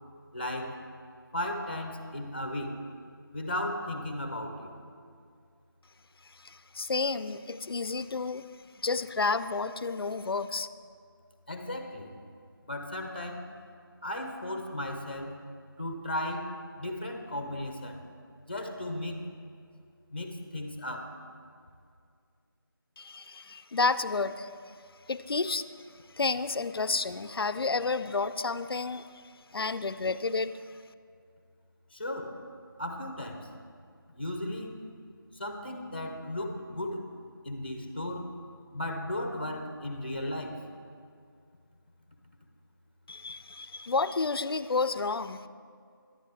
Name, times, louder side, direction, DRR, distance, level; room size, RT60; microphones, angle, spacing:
voice 1, 0.3-0.8 1.3-2.8 3.3-4.7 11.5-12.1 12.6-13.5 14.0-15.4 15.8-18.0 18.5-19.2 20.1-21.2 31.9-32.4 32.8-33.5 34.1-34.8 35.3-37.0 37.4-38.3 38.7-40.6, left 1 dB, 25° left, 4 dB, 0.7 m, -35 dB
voice 2, 6.4-8.4 8.8-10.7 23.0-24.5 25.1-25.6 26.2-29.1 29.5-30.5 43.1-45.4, left 4 dB, 80° left, 14 dB, 0.4 m, -30 dB
10.5 x 9.1 x 3.3 m, 2.3 s
figure-of-eight pair, 175°, 12 cm